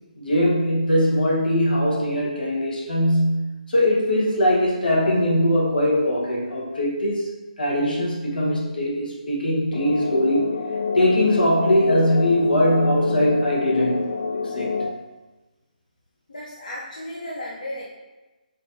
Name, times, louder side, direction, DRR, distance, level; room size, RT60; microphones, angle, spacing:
voice 1, 0.2-7.3 7.6-10.5 10.9-14.7, equal, 85° left, -4 dB, 1.3 m, -21 dB
sound 1, 9.7-14.9, left 4 dB, 35° left, 0.3 m, -28 dB
voice 2, 16.3-17.8, left 1 dB, 65° left, -5 dB, 0.8 m, -34 dB
4.0 x 3.4 x 2.8 m, 1.1 s
hypercardioid pair, 175°, 5 cm